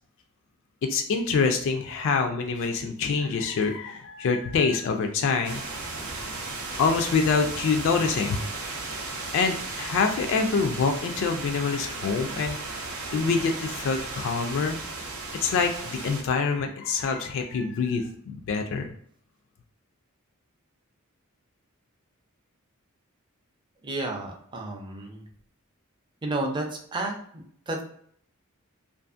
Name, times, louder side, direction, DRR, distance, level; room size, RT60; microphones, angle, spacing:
voice 1, 0.9-5.6 6.8-8.4 9.3-12.6 13.1-14.8 15.4-18.9, left 5 dB, 60° left, 5 dB, 0.3 m, -25 dB
sound 1, 5.4-16.2, right 3 dB, 90° right, 0.6 m, -35 dB
voice 2, 23.8-25.2 26.2-26.6 26.9-27.8, right 2 dB, 20° right, 1 dB, 0.4 m, -31 dB
2.5 x 2.4 x 2.4 m, 0.62 s
head